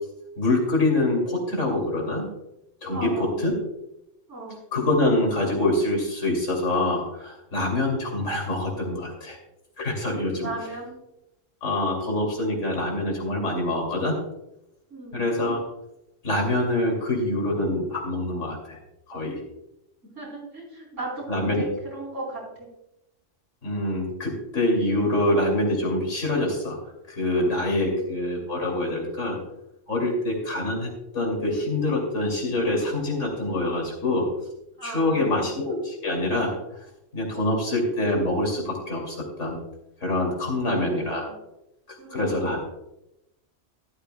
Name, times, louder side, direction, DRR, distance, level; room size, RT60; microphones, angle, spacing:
voice 1, 0.4-2.3 2.8-3.5 4.7-9.4 9.8-10.5 11.6-14.1 15.1-15.6 16.2-18.8 19.1-19.4 21.3-21.7 23.6-26.8 27.1-29.4 29.9-34.3 34.8-36.5 37.1-39.6 40.0-41.3 41.9-42.6, left 1 dB, 80° left, 0 dB, 3.1 m, -25 dB
voice 2, 2.9-3.5 4.3-4.6 10.3-11.0 14.9-15.3 20.1-22.7 34.8-35.6 37.4-37.7 40.5-41.4 42.0-42.6, right 2 dB, 85° right, -3 dB, 4.6 m, -37 dB
13.0 x 12.5 x 2.3 m, 0.89 s
omnidirectional pair, 1.3 m